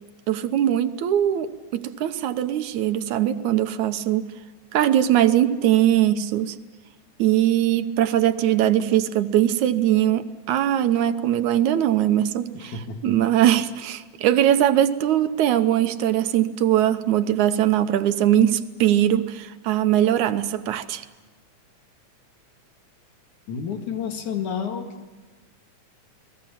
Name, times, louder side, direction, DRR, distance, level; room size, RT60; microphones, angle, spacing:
voice 1, 0.3-4.3 4.7-6.6 7.2-21.0, right 11 dB, 75° right, 10 dB, 2.3 m, -21 dB
voice 2, 12.7-13.1 23.5-24.9, left 7 dB, 75° left, 4 dB, 3.5 m, -30 dB
29.5 x 20.5 x 7.5 m, 1.3 s
omnidirectional pair, 3.5 m